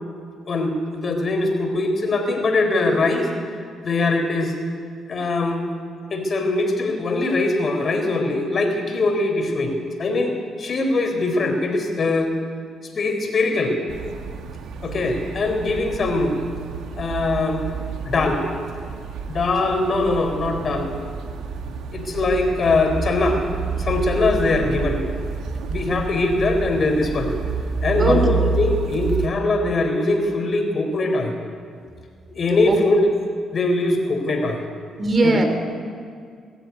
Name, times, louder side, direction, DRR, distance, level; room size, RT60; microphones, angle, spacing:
voice 1, 0.5-3.3 3.8-4.5 5.1-5.6 6.1-12.3 13.0-13.8 14.8-16.3 17.0-17.6 18.0-18.4 19.3-20.9 21.9-23.4 23.8-25.0 25.7-27.3 27.8-31.3 32.3-33.0 33.5-34.6 35.2-35.4, left 2 dB, 45° left, 4 dB, 4.2 m, -22 dB
sound 1, 13.9-29.3, right 5 dB, 80° right, 1.8 m, -29 dB
voice 2, 28.0-28.5 32.7-32.8 35.0-35.5, right 2 dB, 35° right, 6 dB, 3.1 m, -19 dB
22.0 x 13.0 x 9.6 m, 2.2 s
cardioid pair, 90°, 0 cm